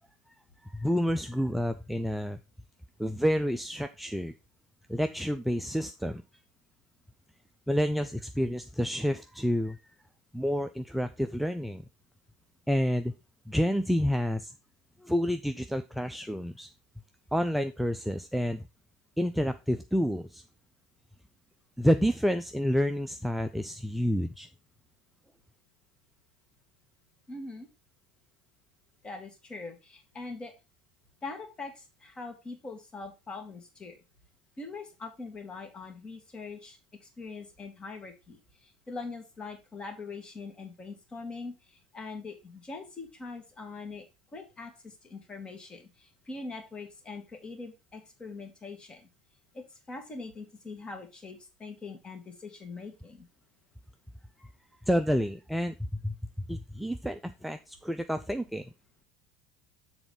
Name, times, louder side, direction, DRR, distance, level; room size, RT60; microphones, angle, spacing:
voice 1, 0.6-2.4 3.0-4.3 4.9-6.2 7.7-9.8 10.3-11.8 12.7-13.1 13.5-14.5 15.0-16.7 17.3-18.6 19.2-20.4 21.8-24.5 54.4-54.5 54.9-56.2 56.5-58.6, equal, ahead, 8 dB, 0.5 m, -29 dB
voice 2, 27.3-27.7 29.0-30.5 31.2-34.0 34.6-36.8 37.2-44.0 44.3-49.1 49.5-53.3, left 3 dB, 25° left, 5 dB, 2.1 m, -42 dB
7.0 x 4.1 x 5.2 m, 0.27 s
figure-of-eight pair, 70°, 4 cm